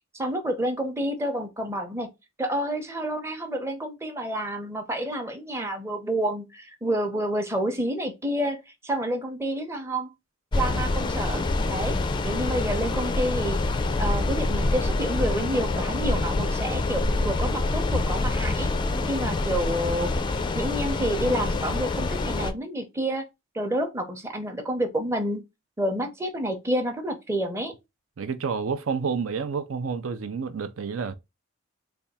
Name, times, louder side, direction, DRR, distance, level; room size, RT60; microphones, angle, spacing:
voice 1, 0.1-2.1 2.4-10.1 10.5-11.4 11.7-12.0 12.2-13.6 14.0-18.7 19.1-20.1 20.5-23.2 23.5-25.4 25.8-27.7, right 1 dB, 15° right, 0.6 m, -29 dB
sound 1, 10.5-22.5, left 2 dB, 25° left, 0.3 m, -26 dB
voice 2, 28.2-31.1, right 5 dB, 85° right, 0.5 m, -29 dB
3.4 x 2.3 x 4.1 m
head